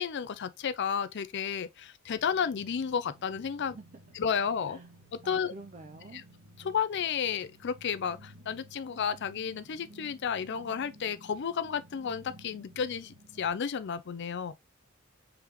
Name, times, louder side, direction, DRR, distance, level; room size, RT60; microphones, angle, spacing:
voice 1, 0.0-3.8 4.1-4.8 5.2-5.5 6.1-6.2 6.6-14.5, left 7 dB, 55° left, 0.5 m, -32 dB
sound 1, 2.2-13.5, right 1 dB, 65° right, 2.1 m, -55 dB
voice 2, 5.2-6.2, right 3 dB, 35° right, 0.5 m, -48 dB
4.8 x 3.6 x 2.9 m
head